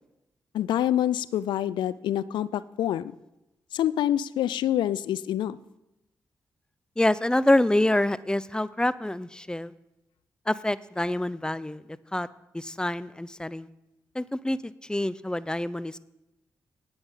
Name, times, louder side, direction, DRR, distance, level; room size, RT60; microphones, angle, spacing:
voice 1, 0.5-3.1 3.7-5.6, left 11 dB, 80° left, 19 dB, 0.4 m, -26 dB
voice 2, 7.0-9.7 10.5-12.3 12.5-13.7 14.1-16.0, left 1 dB, 10° left, 18 dB, 0.5 m, -26 dB
9.1 x 8.6 x 5.5 m, 0.94 s
supercardioid pair, 40°, 8 cm